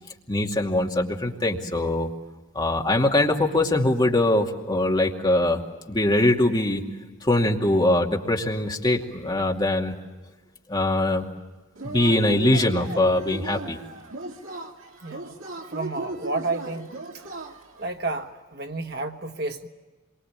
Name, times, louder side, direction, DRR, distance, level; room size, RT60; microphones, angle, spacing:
voice 1, 0.3-2.1 2.5-5.6 5.9-6.8 7.2-9.9 10.7-11.3 11.8-13.8, left 1 dB, 20° left, 0 dB, 2.4 m, -22 dB
Yell / Cheering, 11.7-17.9, right 2 dB, 75° right, 3.0 m, -36 dB
voice 2, 15.0-15.4 15.7-16.9 17.1-17.2 17.8-19.7, right 3 dB, 50° right, 5 dB, 1.5 m, -31 dB
27.0 x 23.5 x 8.9 m, 1.2 s
head